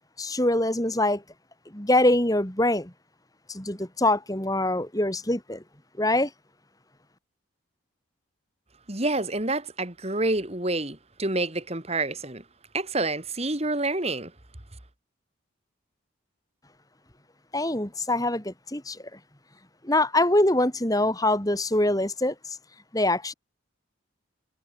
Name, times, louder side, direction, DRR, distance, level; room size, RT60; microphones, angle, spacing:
voice 1, 0.2-1.2 1.7-2.9 3.5-5.6 6.0-6.3 17.5-19.2 19.8-22.6 22.9-23.3, left 1 dB, 15° left, 2.8 m, -24 dB
voice 2, 8.9-12.4 12.7-14.3, right 2 dB, 30° right, 2.5 m, -28 dB
head